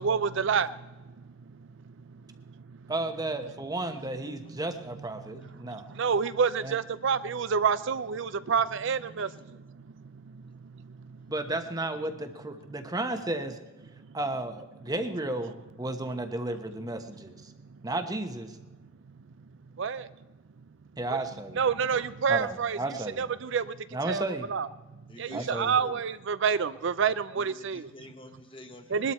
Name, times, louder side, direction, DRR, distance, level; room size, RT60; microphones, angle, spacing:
voice 1, 0.0-2.9 5.2-11.3 14.0-14.2 17.5-17.8 18.8-19.2 19.7-20.1 21.1-21.2 21.6-22.8 23.2-24.2 24.5-27.9 28.9-29.1, right 6 dB, 65° right, 14 dB, 0.5 m, -30 dB
voice 2, 2.9-5.9 6.6-6.8 11.3-13.6 14.1-15.5 15.8-17.5 17.8-18.6 21.0-21.6 22.3-23.2 23.9-24.5 25.3-25.7, right 2 dB, 20° right, 7 dB, 1.1 m, -33 dB
voice 3, 8.9-9.3 10.5-10.6 25.1-26.0 27.3-29.1, left 1 dB, 25° left, 5 dB, 1.4 m, -48 dB
21.0 x 12.5 x 4.3 m, 1.2 s
head